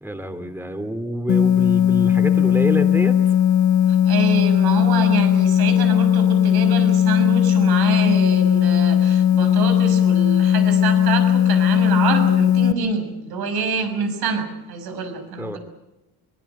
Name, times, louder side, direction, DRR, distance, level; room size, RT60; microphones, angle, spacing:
voice 1, 0.0-3.2 15.4-15.6, right 1 dB, 5° right, 9 dB, 2.9 m, -27 dB
sound 1, 1.3-12.7, left 10 dB, 50° left, 1.4 m, -17 dB
voice 2, 3.9-15.6, right 5 dB, 80° right, 7 dB, 6.1 m, -26 dB
24.0 x 21.5 x 8.0 m, 0.94 s
cardioid pair, 95°, 38 cm